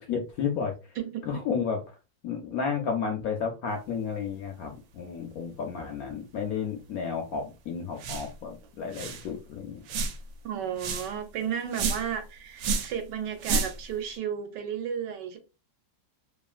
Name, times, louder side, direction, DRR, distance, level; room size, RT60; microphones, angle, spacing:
voice 1, 0.0-1.0 1.3-2.0 2.2-9.8, left 6 dB, 70° left, 0.9 m, -32 dB
sound 1, 8.0-8.3 8.6-8.7 8.9-9.3 9.9-10.3 10.8-11.1 11.7-12.2 12.6-13.0 13.4-13.9, right 4 dB, 90° right, 1.3 m, -30 dB
voice 2, 10.4-15.4, right 8 dB, 75° right, 1.2 m, -33 dB
3.0 x 2.4 x 2.4 m
omnidirectional pair, 2.0 m